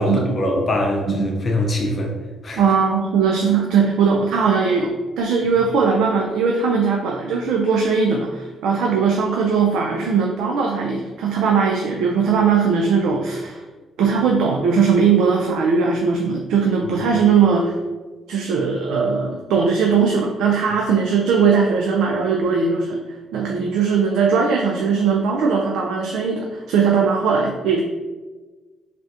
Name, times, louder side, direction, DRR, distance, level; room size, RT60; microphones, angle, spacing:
voice 1, 0.0-2.1 2.4-2.6, left 1 dB, 40° left, 1 dB, 0.6 m, -22 dB
voice 2, 2.6-13.6 14.0-17.8 18.3-23.0 23.3-27.8, right 5 dB, 85° right, 0 dB, 0.3 m, -19 dB
3.3 x 2.5 x 2.7 m, 1.3 s
cardioid pair, 90°, 0 cm